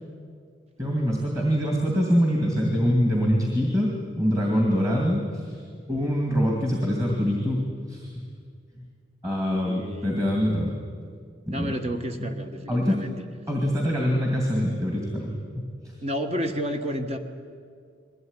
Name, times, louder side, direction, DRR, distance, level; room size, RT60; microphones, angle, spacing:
voice 1, 0.8-5.6 5.9-8.2 8.7-8.9 9.2-10.7 11.5-11.7 12.2-12.3 12.7-13.0 13.5-15.3 15.6-15.9, equal, 15° right, -1 dB, 2.4 m, -24 dB
voice 2, 9.5-10.2 11.5-13.1 16.0-17.2, equal, 35° right, 5 dB, 1.4 m, -31 dB
21.0 x 16.0 x 9.9 m, 2.2 s
head